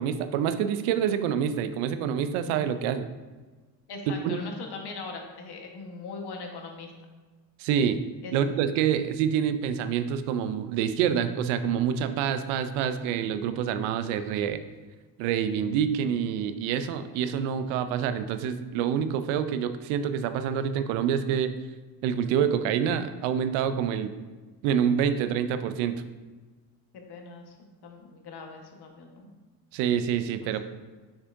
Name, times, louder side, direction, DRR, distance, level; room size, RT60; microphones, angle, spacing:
voice 1, 0.0-3.1 4.1-4.4 7.6-8.0 8.3-14.6 15.2-21.5 22.0-24.1 24.6-26.0 29.7-30.6, right 8 dB, 85° right, 10 dB, 0.6 m, -27 dB
voice 2, 3.9-6.9 8.2-8.4 26.9-27.5 27.8-29.3 30.4-30.5, left 4 dB, 55° left, 2 dB, 1.4 m, -40 dB
6.2 x 6.2 x 2.6 m, 1.3 s
supercardioid pair, 70°, 46 cm